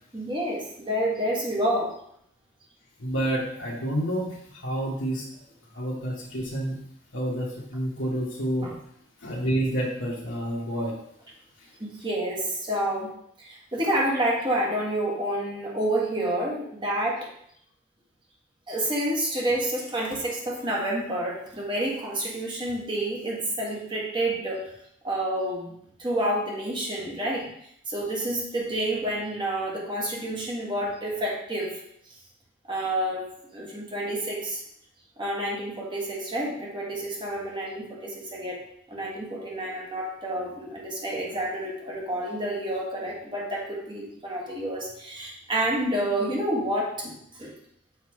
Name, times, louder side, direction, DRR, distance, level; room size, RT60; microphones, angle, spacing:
voice 1, 0.1-1.9 8.6-8.7 11.8-13.1 13.4-17.3 18.7-24.7 25.0-27.5 27.9-31.7 32.7-34.6 35.2-38.6 38.9-47.1 47.4-47.5, right 1 dB, 25° right, -3 dB, 1.5 m, -29 dB
voice 2, 3.0-5.2 5.7-6.8 7.1-8.7 9.2-10.9 11.6-11.7, right 1 dB, 85° left, -5 dB, 1.2 m, -29 dB
6.5 x 3.4 x 4.6 m, 0.70 s
head